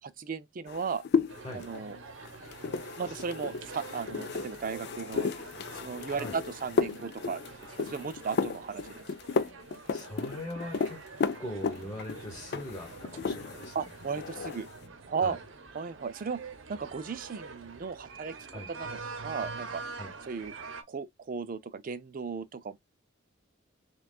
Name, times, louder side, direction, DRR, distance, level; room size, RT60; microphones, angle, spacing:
voice 1, 0.0-1.0 1.5-2.0 3.0-5.3 5.7-7.4 7.8-9.0 13.7-14.7 15.1-15.4 15.7-16.4 16.7-18.3 18.7-19.8 20.3-20.5 20.9-22.8, right 5 dB, 45° right, 0.4 m, -36 dB
sound 1, 0.7-13.8 14.0-14.7, left 4 dB, 55° left, 0.4 m, -34 dB
sound 2, 1.3-20.8, right 4 dB, 80° right, 0.8 m, -46 dB
voice 2, 9.9-11.0 11.3-13.7 15.2-15.4 18.5-18.7 20.0-20.1, left 1 dB, 20° left, 1.3 m, -40 dB
6.1 x 2.3 x 2.3 m
head